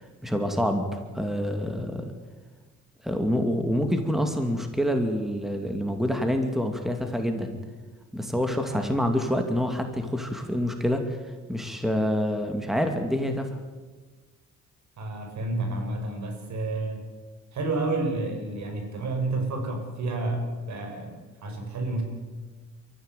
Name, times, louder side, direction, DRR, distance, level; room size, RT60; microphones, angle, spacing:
voice 1, 0.0-2.1 3.0-7.6 8.1-11.2 11.5-13.5, equal, ahead, 5 dB, 2.5 m, -27 dB
voice 2, 15.0-17.0 17.5-22.0, right 2 dB, 65° right, 4 dB, 5.7 m, -30 dB
23.5 x 14.0 x 9.2 m, 1.3 s
cardioid pair, 90°, 30 cm